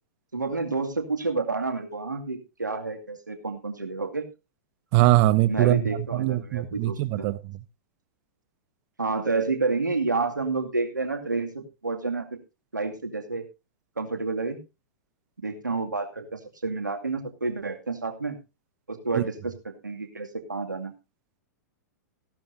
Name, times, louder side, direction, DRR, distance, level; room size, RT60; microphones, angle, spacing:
voice 1, 0.3-4.2 5.5-7.3 9.0-12.3 12.7-13.5 14.0-14.6 15.4-18.4 18.9-20.9, right 3 dB, 85° right, 2.3 m, -29 dB
voice 2, 4.9-7.6 19.1-19.3, right 15 dB, 45° right, 0.8 m, -22 dB
16.0 x 12.0 x 2.7 m
figure-of-eight pair, 105°, 10 cm